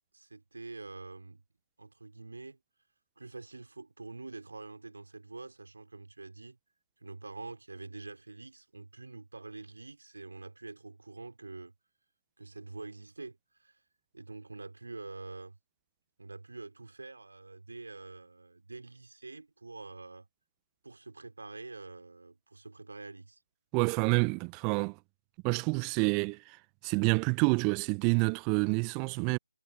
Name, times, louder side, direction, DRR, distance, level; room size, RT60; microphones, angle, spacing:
voice 1, 0.1-1.4 1.8-2.6 3.2-6.6 7.0-11.7 12.4-13.8 14.1-15.6 16.2-20.3 20.8-23.4, right 3 dB, 65° right, 3.7 m, -46 dB
voice 2, 23.7-25.0 25.4-26.6 26.8-29.4, right 35 dB, 15° right, 0.7 m, -28 dB
figure-of-eight pair, 150°, 0 cm